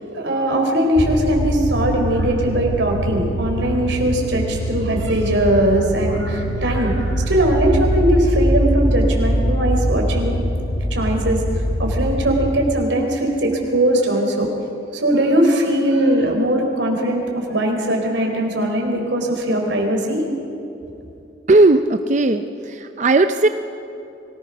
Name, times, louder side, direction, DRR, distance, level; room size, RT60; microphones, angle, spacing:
voice 1, 0.0-10.4 10.9-14.5 14.9-20.2, right 1 dB, 90° right, 1 dB, 4.0 m, -20 dB
sound 1, 1.0-12.7, equal, 45° left, 1.8 m, -22 dB
voice 2, 21.5-23.5, right 2 dB, 40° right, 9 dB, 0.6 m, -16 dB
24.0 x 18.5 x 6.1 m, 2.7 s
head